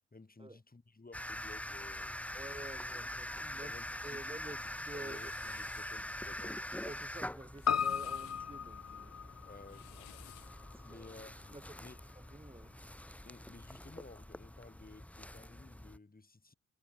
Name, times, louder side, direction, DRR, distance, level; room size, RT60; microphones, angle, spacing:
voice 1, 0.1-2.5 3.5-6.7 9.5-10.6 10.8-12.0 13.2-16.5, left 3 dB, 25° left, 6.9 m, -55 dB
sound 1, 1.1-16.0, left 1 dB, 5° left, 1.1 m, -44 dB
voice 2, 2.3-3.7 4.0-5.3 6.8-9.1 10.8-11.1 11.5-11.8 12.2-12.7, right 2 dB, 15° right, 3.6 m, -49 dB
Scrape noise, 4.7-6.0 7.4-8.5 9.5-10.6, left 29 dB, 90° left, 5.2 m, -57 dB
Piano, 7.7-12.2 12.5-12.6, left 7 dB, 50° left, 2.5 m, -38 dB
hypercardioid pair, 45°, 33 cm